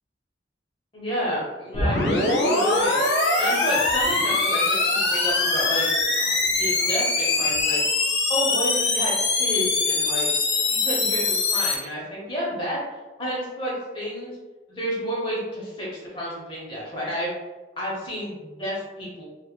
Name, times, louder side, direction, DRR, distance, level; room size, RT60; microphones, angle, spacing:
voice 1, 0.9-3.0 3.4-5.9 6.6-7.8 8.3-10.3 10.7-12.8 13.2-14.3 14.7-17.3 17.8-19.2, equal, 30° left, -5 dB, 0.9 m, -30 dB
sound 1, 1.7-11.7, left 3 dB, 75° left, 0.5 m, -22 dB
2.9 x 2.3 x 2.3 m, 1.2 s
head